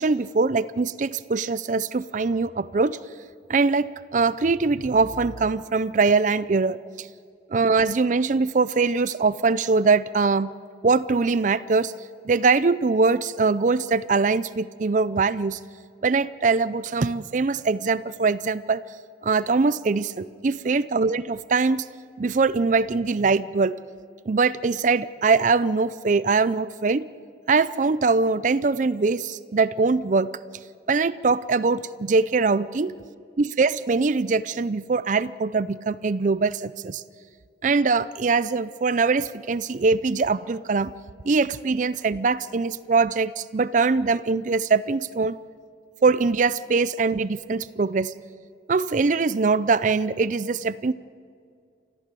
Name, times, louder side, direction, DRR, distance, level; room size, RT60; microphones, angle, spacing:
voice 1, 0.0-3.0 3.5-3.9 4.1-7.1 7.5-10.5 10.8-11.9 12.3-15.6 16.0-18.8 19.2-21.8 22.2-23.7 24.3-27.1 27.5-30.3 30.9-32.9 33.4-37.0 37.6-40.9 41.3-45.4 46.0-48.1 48.7-50.9, right 4 dB, 45° right, 16 dB, 0.5 m, -22 dB
29.0 x 14.5 x 7.6 m, 2.2 s
head